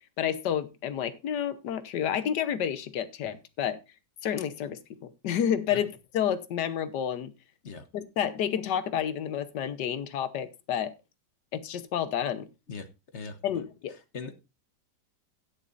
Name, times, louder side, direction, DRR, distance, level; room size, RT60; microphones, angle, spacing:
voice 1, 0.2-3.8 4.2-7.3 7.9-10.9 11.5-12.5 13.4-13.9, left 9 dB, 80° left, 1.5 m, -30 dB
voice 2, 5.7-5.8 7.6-7.9 12.7-12.9 13.1-13.4 14.1-14.3, left 4 dB, 45° left, 1.2 m, -39 dB
16.5 x 8.3 x 2.5 m
omnidirectional pair, 1.8 m